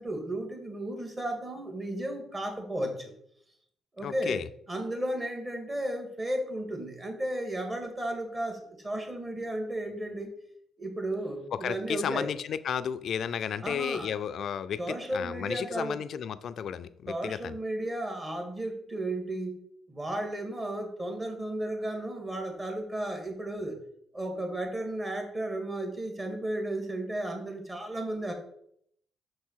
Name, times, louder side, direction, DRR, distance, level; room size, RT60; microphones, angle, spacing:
voice 1, 0.0-3.1 4.0-4.4 4.7-10.3 10.8-12.3 13.6-14.1 14.8-16.0 17.1-19.6 19.9-23.8 24.1-28.3, right 1 dB, 25° right, 3 dB, 1.8 m, -34 dB
voice 2, 4.0-4.5 11.6-17.6, left 8 dB, 65° left, 13 dB, 0.4 m, -33 dB
6.3 x 4.7 x 4.5 m, 0.69 s
cardioid pair, 90°, 0 cm